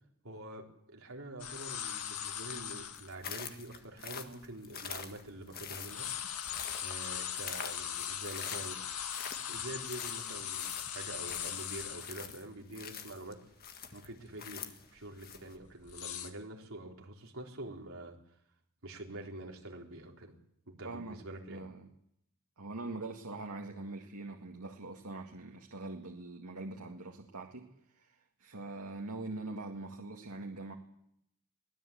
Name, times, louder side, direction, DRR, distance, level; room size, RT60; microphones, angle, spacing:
voice 1, 0.2-6.1 6.3-6.4 6.8-8.8 9.5-13.4 13.9-18.2 18.8-20.3 20.8-21.6, right 1 dB, 65° right, 1 dB, 3.8 m, -46 dB
sound 1, 1.4-3.1 3.7-3.8 4.4-5.4 5.7-12.4 12.8-12.9 13.3-13.6 14.0-14.3 15.0-16.3, left 9 dB, 85° left, 1.8 m, -40 dB
sound 2, 2.9-15.5, left 7 dB, 45° left, 1.7 m, -46 dB
voice 2, 20.8-21.2 21.5-21.9 22.6-27.7 27.9-30.7, right 2 dB, 90° right, 2 dB, 2.0 m, -43 dB
23.5 x 17.5 x 8.6 m, 0.76 s
head